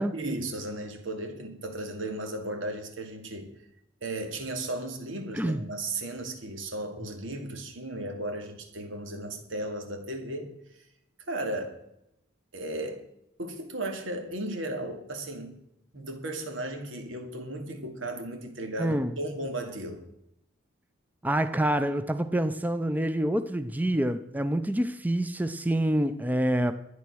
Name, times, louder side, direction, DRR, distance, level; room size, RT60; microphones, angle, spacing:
voice 1, 0.1-3.5 4.0-10.5 11.3-11.8 12.5-13.0 13.4-15.6 15.9-20.0, right 1 dB, 90° right, 2.5 m, -35 dB
voice 2, 5.3-5.6 18.8-19.2 21.2-26.7, right 1 dB, 10° right, 0.5 m, -27 dB
12.5 x 9.6 x 6.3 m
head